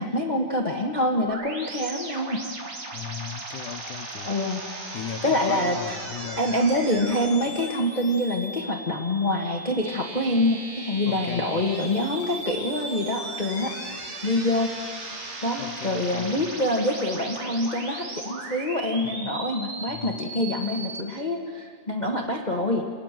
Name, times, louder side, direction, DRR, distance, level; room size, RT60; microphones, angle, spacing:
voice 1, 0.0-2.4 4.2-4.6 5.2-6.0 6.4-13.7 14.2-14.7 15.4-22.9, left 1 dB, 25° left, 2 dB, 0.9 m, -26 dB
sound 1, 1.3-21.0, right 2 dB, 75° right, 5.0 m, -37 dB
voice 2, 2.9-4.3 4.9-6.4 11.1-11.7 15.6-16.5 19.0-19.1 19.9-20.2, left 10 dB, 85° left, 10 dB, 2.4 m, -37 dB
29.5 x 19.0 x 7.6 m, 2.1 s
omnidirectional pair, 3.5 m